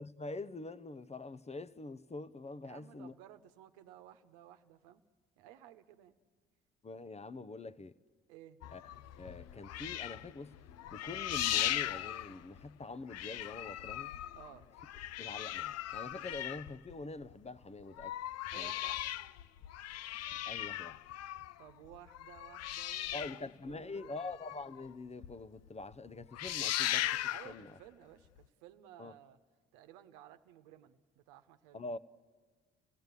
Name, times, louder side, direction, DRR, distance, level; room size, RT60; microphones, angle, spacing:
voice 1, 0.0-3.1 6.8-7.9 8.7-8.9 9.2-10.6 10.9-14.2 15.2-18.2 18.5-18.7 20.5-21.0 23.1-27.2 27.4-27.8 29.0-29.1 31.7-32.0, left 3 dB, 20° left, 0.8 m, -45 dB
voice 2, 2.6-5.0 5.4-6.2 8.3-8.6 14.3-14.7 18.5-19.1 21.6-24.2 27.3-29.4 29.7-31.8, right 11 dB, 80° right, 1.1 m, -56 dB
sound 1, 8.6-12.8 13.1-17.3 17.8-24.9 25.2-25.3 25.7-25.9 26.2-27.6 28.4-28.5, left 13 dB, 55° left, 0.6 m, -38 dB
30.0 x 17.5 x 8.3 m
hypercardioid pair, 60°, 30 cm